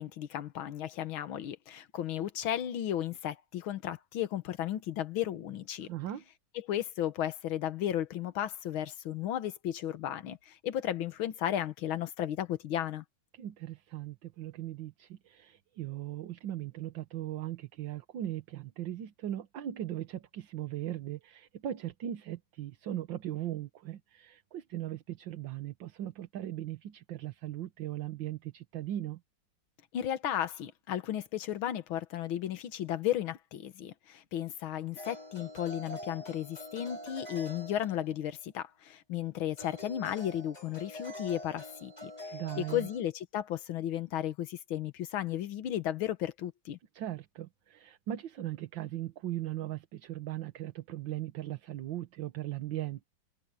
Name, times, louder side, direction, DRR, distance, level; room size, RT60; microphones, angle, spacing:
voice 1, 0.0-5.9 6.7-13.0 29.9-46.8, left 11 dB, 85° left, 1.9 m, -34 dB
voice 2, 5.8-6.2 13.3-29.2 42.3-42.9 46.9-53.0, right 12 dB, 70° right, 1.8 m, -38 dB
sound 1, 35.0-38.3 39.5-43.0, left 1 dB, 20° left, 4.6 m, -45 dB
omnidirectional pair, 2.2 m